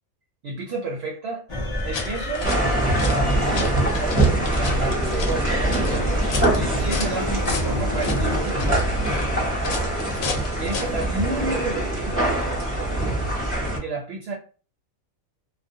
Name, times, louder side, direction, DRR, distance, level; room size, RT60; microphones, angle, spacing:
voice 1, 0.4-1.4 1.8-2.5 3.1-8.6 10.6-12.3 13.8-14.3, right 3 dB, 65° right, 0 dB, 0.6 m, -31 dB
sound 1, 1.5-8.4, equal, 50° left, 0.3 m, -29 dB
sound 2, 1.8-11.1, left 4 dB, 80° left, 1.0 m, -34 dB
sound 3, 2.4-13.8, right 1 dB, 15° right, 0.5 m, -24 dB
2.3 x 2.1 x 2.6 m, 0.38 s
omnidirectional pair, 1.4 m